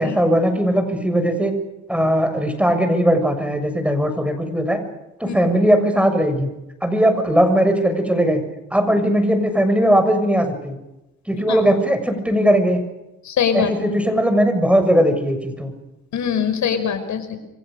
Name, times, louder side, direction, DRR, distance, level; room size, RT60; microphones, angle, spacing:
voice 1, 0.0-1.5 1.9-4.8 5.2-6.5 6.8-8.4 8.7-10.8 11.3-12.8 13.5-15.7, equal, 5° right, 8 dB, 6.9 m, -18 dB
voice 2, 13.2-13.7 16.1-17.4, left 7 dB, 70° left, 9 dB, 5.5 m, -22 dB
29.0 x 24.0 x 6.6 m, 0.93 s
cardioid pair, 90°, 30 cm